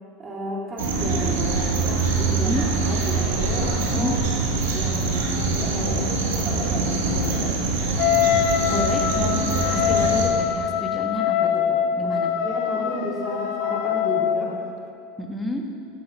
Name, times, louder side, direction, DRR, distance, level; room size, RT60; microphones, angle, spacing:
voice 1, 0.2-4.3 4.7-6.1 6.3-7.6 11.4-14.5, right 1 dB, 25° right, -5 dB, 2.9 m, -33 dB
sound 1, 0.8-10.3, right 3 dB, 90° right, 1.8 m, -24 dB
voice 2, 2.3-2.7 3.9-4.1 8.7-11.6 12.0-12.3 15.2-15.6, left 1 dB, 10° left, 2 dB, 1.5 m, -30 dB
Wind instrument woodwind instrument, 8.0-14.6, left 9 dB, 65° left, 0.9 m, -23 dB
15.0 x 6.4 x 6.1 m, 2.5 s
supercardioid pair, 105°, 0 cm